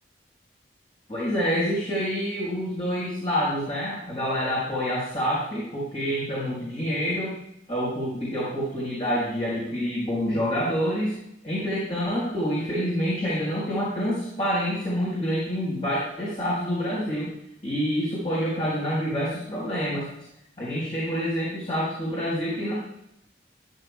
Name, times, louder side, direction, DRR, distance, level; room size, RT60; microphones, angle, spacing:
voice 1, 1.1-7.3 7.7-11.1 11.4-17.3 17.6-20.0 20.6-22.7, equal, 35° left, -7 dB, 4.3 m, -27 dB
14.0 x 11.5 x 2.3 m, 0.79 s
head